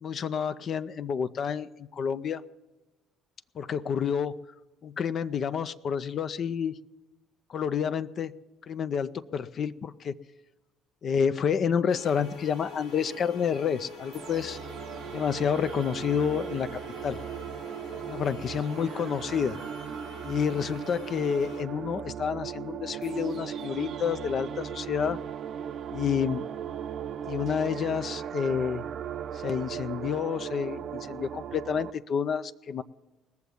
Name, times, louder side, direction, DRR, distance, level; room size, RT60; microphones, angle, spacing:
voice 1, 0.0-2.4 3.6-4.4 4.8-6.8 7.5-8.3 8.7-10.1 11.0-14.6 15.1-17.2 18.1-19.6 20.2-25.2 25.9-26.4 27.3-28.8 29.3-32.8, left 7 dB, 55° left, 12 dB, 0.5 m, -29 dB
sound 1, 11.9-21.6, left 5 dB, 80° left, 1.8 m, -45 dB
sound 2, 14.1-31.9, right 9 dB, 60° right, 0.5 m, -37 dB
19.5 x 7.0 x 9.3 m, 1.1 s
hypercardioid pair, 55°, 0 cm